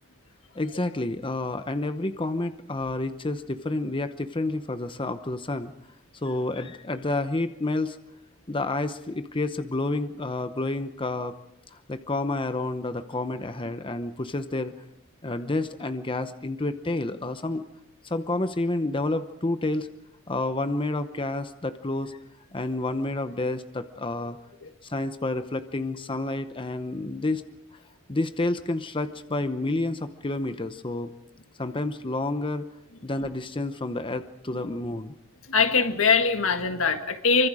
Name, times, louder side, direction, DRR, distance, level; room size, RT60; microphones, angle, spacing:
voice 1, 0.5-5.7 6.2-8.0 8.5-11.3 11.7-14.7 15.2-17.7 18.0-19.9 20.3-22.2 22.5-24.4 24.8-27.4 28.1-31.1 31.6-32.7 33.0-35.1, left 2 dB, 25° left, 10 dB, 0.8 m, -29 dB
voice 2, 35.5-37.5, left 5 dB, 85° left, 7 dB, 1.8 m, -22 dB
25.0 x 25.0 x 4.9 m, 0.84 s
head